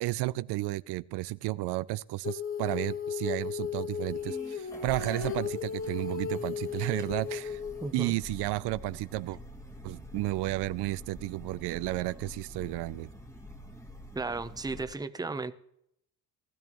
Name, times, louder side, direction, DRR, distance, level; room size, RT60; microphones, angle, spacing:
voice 1, 0.0-7.6 7.9-9.4 9.8-13.1, right 18 dB, 85° right, 0.5 m, -32 dB
Female singing, 2.2-8.0, left 6 dB, 35° left, 1.2 m, -35 dB
sound 1, 3.9-14.8, left 1 dB, 5° left, 1.4 m, -46 dB
voice 2, 7.8-8.2 14.1-15.5, right 3 dB, 10° right, 0.7 m, -34 dB
19.5 x 12.5 x 3.0 m
cardioid pair, 105°, 40 cm